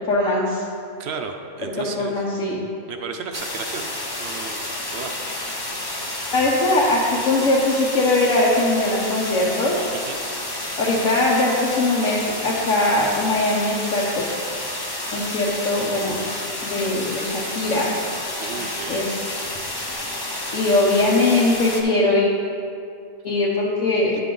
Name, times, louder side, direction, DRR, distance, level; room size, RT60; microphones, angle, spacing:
voice 1, 0.1-0.6 1.6-2.6 6.3-9.8 10.8-14.3 15.1-16.2 16.6-17.9 18.9-19.2 20.5-22.4 23.2-24.1, left 2 dB, 75° left, -6 dB, 1.3 m, -21 dB
voice 2, 1.0-2.1 2.9-3.9 4.2-4.6 4.9-5.1 5.4-5.7 10.1-10.2 18.4-19.0 19.4-19.5, right 5 dB, 65° right, 5 dB, 0.7 m, -33 dB
sound 1, 3.3-21.8, left 1 dB, 25° left, 0.6 m, -30 dB
9.5 x 5.9 x 3.8 m, 2.4 s
omnidirectional pair, 1.3 m